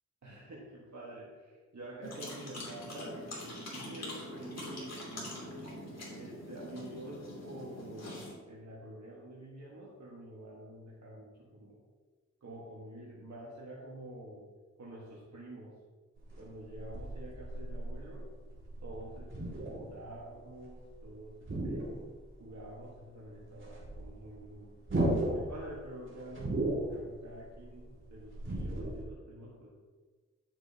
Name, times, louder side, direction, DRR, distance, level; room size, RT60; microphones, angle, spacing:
voice 1, 0.2-5.9 6.1-8.2 8.5-11.8 12.4-14.5 14.8-15.8 16.4-18.3 18.8-21.9 22.4-24.8 25.3-29.7, right 1 dB, 70° right, -5 dB, 1.6 m, -48 dB
sound 1, 2.0-8.3, left 1 dB, 60° left, 2.9 m, -44 dB
sound 2, 16.2-21.1 21.3-22.6 22.9-23.0 23.3-29.0, right 1 dB, 40° right, 2.6 m, -36 dB
11.5 x 7.6 x 2.9 m, 1.4 s
wide cardioid pair, 90°, 29 cm